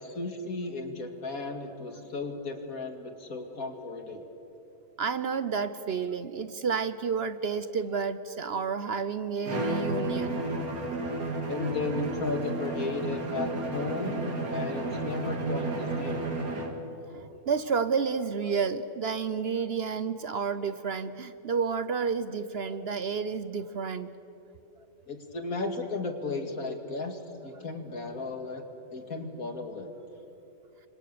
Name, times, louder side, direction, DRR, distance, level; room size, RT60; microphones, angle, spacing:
voice 1, 0.0-4.2 11.4-16.3 25.1-28.6 28.9-29.9, left 3 dB, 70° left, 5 dB, 2.5 m, -35 dB
voice 2, 5.0-10.4 17.1-24.1 27.6-27.7, right 5 dB, 50° right, 13 dB, 0.9 m, -30 dB
Bowed string instrument, 9.4-16.9, right 2 dB, 70° right, 2.7 m, -32 dB
29.5 x 25.0 x 6.7 m, 2.9 s
omnidirectional pair, 1.6 m